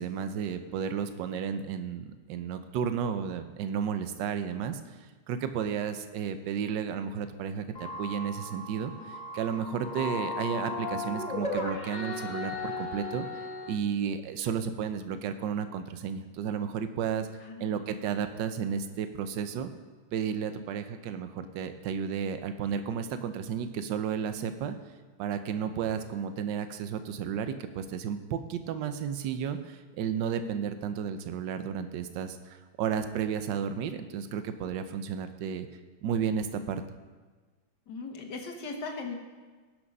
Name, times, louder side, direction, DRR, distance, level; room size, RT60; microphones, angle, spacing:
voice 1, 0.0-5.0 5.3-13.3 13.7-17.3 17.6-19.7 20.1-24.7 25.2-35.7 36.0-36.8, right 7 dB, 70° right, 10 dB, 1.3 m, -33 dB
sound 1, 7.7-13.7, left 2 dB, 35° left, 0.8 m, -36 dB
voice 2, 17.4-17.8 37.9-39.1, left 4 dB, 60° left, 3 dB, 1.9 m, -38 dB
16.5 x 6.2 x 5.4 m, 1.4 s
omnidirectional pair, 2.1 m